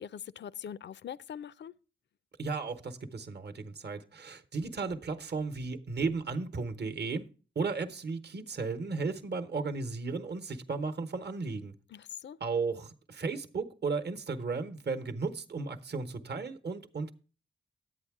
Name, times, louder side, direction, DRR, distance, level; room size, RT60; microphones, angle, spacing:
voice 1, 0.0-1.7 11.9-12.4, left 8 dB, 60° left, 0.4 m, -42 dB
voice 2, 2.4-7.3 7.5-11.7 12.4-17.1, right 4 dB, 55° right, 1.0 m, -35 dB
11.0 x 8.5 x 3.5 m
cardioid pair, 45°, 21 cm